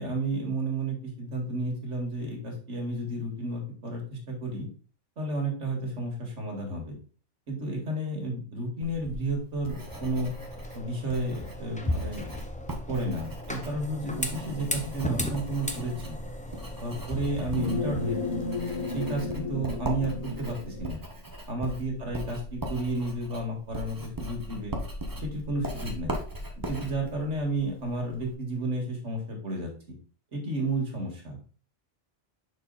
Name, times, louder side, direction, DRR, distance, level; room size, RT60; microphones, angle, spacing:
voice 1, 0.0-4.7 5.2-7.0 7.5-10.3 10.7-12.3 12.9-16.2 16.8-18.4 18.9-21.0 21.5-24.8 25.2-26.2 26.7-29.7 30.3-31.4, right 2 dB, 70° right, 0 dB, 2.2 m, -32 dB
Writing, 8.8-28.3, right 1 dB, 20° right, 0.9 m, -39 dB
sound 1, 9.9-19.1, left 1 dB, 10° left, 0.4 m, -37 dB
sound 2, 14.0-20.9, left 3 dB, 30° left, 1.3 m, -35 dB
6.3 x 4.5 x 3.9 m, 0.40 s
omnidirectional pair, 1.3 m